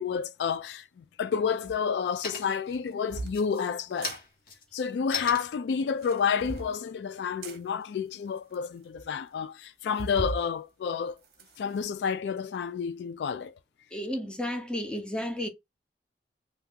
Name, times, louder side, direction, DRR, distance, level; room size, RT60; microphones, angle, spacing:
voice 1, 0.0-4.2 4.7-11.2 11.6-13.5, left 6 dB, 75° left, 0.3 m, -30 dB
sound 1, 0.6-1.2 1.6-2.8 3.2-7.7, left 5 dB, 55° left, 1.1 m, -39 dB
sound 2, 1.6-1.8 2.7-3.4 3.9-4.2 5.9-6.7 7.4-7.6 8.3-8.4 8.5-8.6 9.0-9.1 10.0-10.4 10.9-11.9, right 3 dB, 60° right, 0.8 m, -38 dB
voice 2, 13.9-15.5, left 1 dB, 5° left, 0.6 m, -32 dB
2.8 x 2.4 x 3.6 m
head